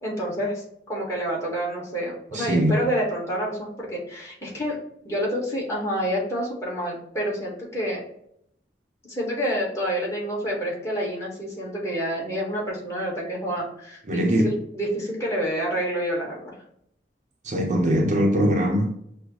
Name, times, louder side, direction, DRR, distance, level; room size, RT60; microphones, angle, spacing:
voice 1, 0.0-4.8 5.0-8.0 9.1-16.5, equal, 15° left, 1.5 m, -28 dB
voice 2, 2.3-2.7 14.1-14.5 17.4-18.9, equal, 45° right, 0.8 m, -21 dB
6.1 x 2.1 x 3.1 m
head